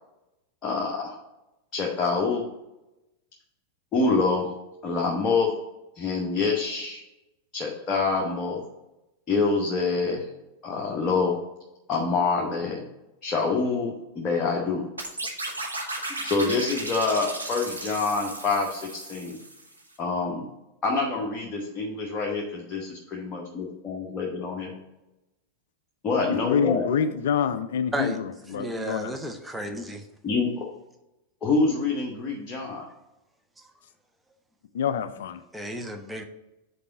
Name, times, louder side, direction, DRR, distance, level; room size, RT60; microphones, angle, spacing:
voice 1, 0.6-1.2 1.7-2.4 3.9-4.5 4.8-5.5 5.9-7.0 7.5-8.6 9.3-10.2 10.6-11.3 11.9-12.8 13.2-14.8 16.2-18.8 19.1-19.4 20.0-20.5 20.8-24.7 26.0-26.9 30.2-30.7 31.4-32.8, left 4 dB, 25° left, -2 dB, 1.0 m, -26 dB
sound 1, 15.0-19.8, right 2 dB, 85° right, 1.0 m, -35 dB
voice 2, 26.3-29.2 34.7-35.4, left 7 dB, 60° left, 11 dB, 0.4 m, -27 dB
voice 3, 28.5-30.0 35.5-36.2, right 1 dB, 5° right, 5 dB, 0.7 m, -33 dB
5.2 x 4.0 x 5.7 m, 0.95 s
figure-of-eight pair, 90°, 0 cm